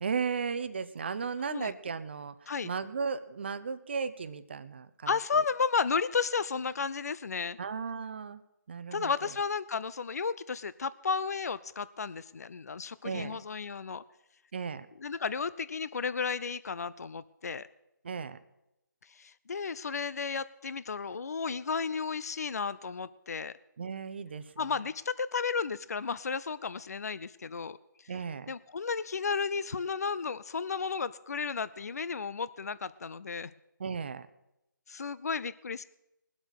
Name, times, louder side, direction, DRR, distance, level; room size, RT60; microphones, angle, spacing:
voice 1, 0.0-5.1 7.6-8.4 8.7-9.1 13.0-13.4 14.5-14.9 18.0-18.4 23.8-24.7 28.1-28.5 33.8-34.3, right 5 dB, 35° right, 13 dB, 0.7 m, -35 dB
voice 2, 5.1-7.6 8.9-14.0 15.0-17.7 19.2-23.5 24.6-27.8 28.5-33.5 34.9-35.8, left 5 dB, 50° left, 17 dB, 0.5 m, -33 dB
20.5 x 8.1 x 6.4 m, 0.88 s
figure-of-eight pair, 165°, 11 cm